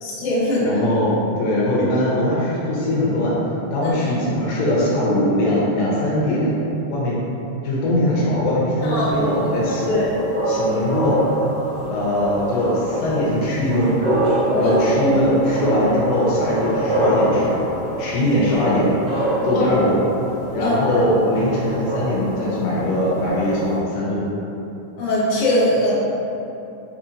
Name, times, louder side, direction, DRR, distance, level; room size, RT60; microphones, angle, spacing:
voice 1, 0.0-0.6 3.8-4.2 8.8-9.3 9.8-10.1 14.5-14.7 19.5-19.7 20.6-21.0 25.0-25.9, left 1 dB, 60° left, -9 dB, 1.6 m, -21 dB
voice 2, 0.6-3.4 3.7-6.6 6.9-7.2 7.6-10.0 10.5-11.2 11.9-13.9 14.6-17.6 18.0-18.9 19.4-20.0 20.5-24.2, left 1 dB, 85° left, -6 dB, 2.5 m, -21 dB
sound 1, 8.8-23.8, right 1 dB, 85° right, 0.9 m, -25 dB
6.0 x 2.9 x 2.5 m, 2.9 s
omnidirectional pair, 3.9 m